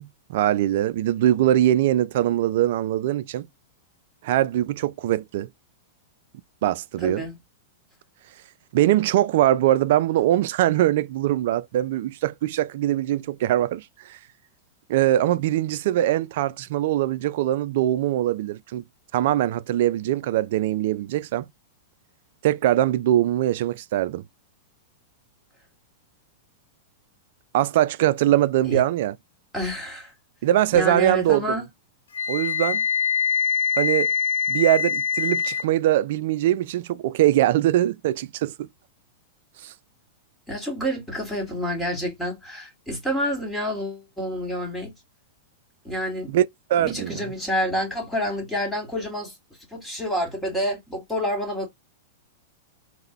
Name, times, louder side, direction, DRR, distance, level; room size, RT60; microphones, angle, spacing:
voice 1, 0.0-3.5 4.2-5.5 6.6-7.2 8.7-13.8 14.1-14.2 14.9-18.8 19.1-21.5 22.4-24.2 27.5-29.2 30.4-31.6 32.3-32.8 33.8-34.1 34.5-38.7 39.6-39.7 46.3-47.2, right 13 dB, 60° right, 0.3 m, -22 dB
voice 2, 7.0-7.4 28.6-28.8 29.5-30.1 30.7-31.6 40.5-44.9 45.8-46.3 46.8-49.3 49.7-51.7, equal, 5° left, 1.8 m, -28 dB
Wind instrument woodwind instrument, 32.1-35.6, left 7 dB, 80° left, 0.9 m, -24 dB
3.8 x 2.1 x 3.0 m
hypercardioid pair, 115°, 0 cm